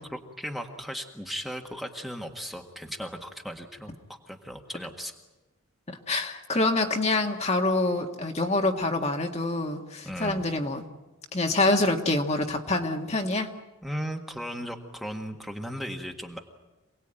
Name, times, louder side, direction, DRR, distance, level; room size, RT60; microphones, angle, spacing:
voice 1, 0.0-3.9 4.3-5.1 10.0-10.5 13.8-16.4, equal, ahead, 2 dB, 1.6 m, -36 dB
voice 2, 5.9-10.8 11.3-13.5, left 2 dB, 30° left, 3 dB, 1.7 m, -26 dB
27.5 x 19.0 x 9.0 m, 1.1 s
head